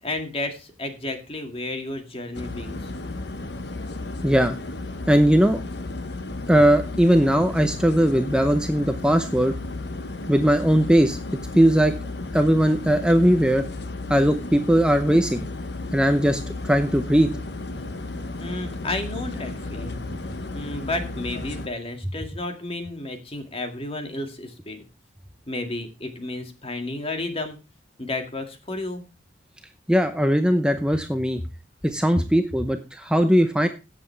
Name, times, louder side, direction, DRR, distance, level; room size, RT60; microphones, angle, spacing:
voice 1, 0.0-2.9 18.4-20.0 20.5-24.8 25.5-27.6 28.0-29.0 32.1-32.2, left 2 dB, 30° left, 6 dB, 2.2 m, -32 dB
sound 1, 2.3-21.7, left 2 dB, 65° left, 1.2 m, -33 dB
voice 2, 4.2-4.6 5.1-5.6 6.5-9.5 10.3-11.2 11.6-11.9 12.3-13.6 14.1-15.5 15.9-17.3 29.9-31.4 31.8-33.7, equal, 5° right, 7 dB, 0.7 m, -19 dB
17.0 x 7.6 x 3.3 m, 0.29 s
head